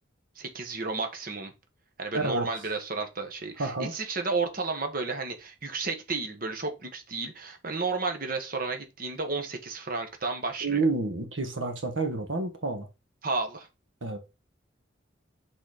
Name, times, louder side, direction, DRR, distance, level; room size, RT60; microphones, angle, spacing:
voice 1, 0.3-1.5 2.0-10.8 13.2-13.7, right 3 dB, 45° right, 1.3 m, -32 dB
voice 2, 2.1-2.4 3.6-3.9 10.6-12.9 14.0-14.2, right 3 dB, 80° right, 1.3 m, -29 dB
6.4 x 4.1 x 5.0 m
head